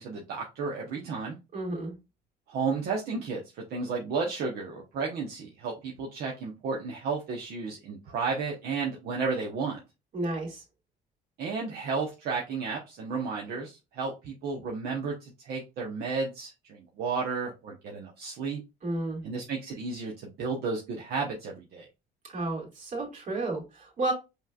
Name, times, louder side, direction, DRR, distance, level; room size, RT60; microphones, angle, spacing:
voice 1, 0.0-1.4 2.5-9.8 11.4-18.6 19.2-21.9, right 4 dB, 70° right, 1.0 m, -33 dB
voice 2, 1.5-1.9 10.1-10.6 18.8-19.2 22.3-24.1, right 2 dB, 50° right, 2.4 m, -32 dB
5.4 x 3.2 x 2.4 m
cardioid pair, 110°, 17 cm